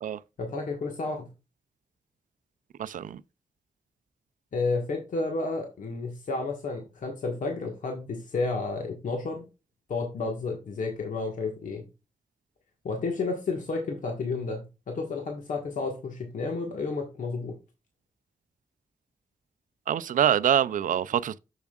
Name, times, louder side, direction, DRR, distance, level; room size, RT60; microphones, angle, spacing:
voice 1, 0.4-1.3 4.5-9.4 9.9-11.9 12.8-17.5, left 3 dB, 75° left, 1.5 m, -31 dB
voice 2, 2.8-3.2 19.9-21.4, right 10 dB, 80° right, 0.4 m, -25 dB
7.3 x 7.0 x 2.4 m
wide cardioid pair, 170°, 14 cm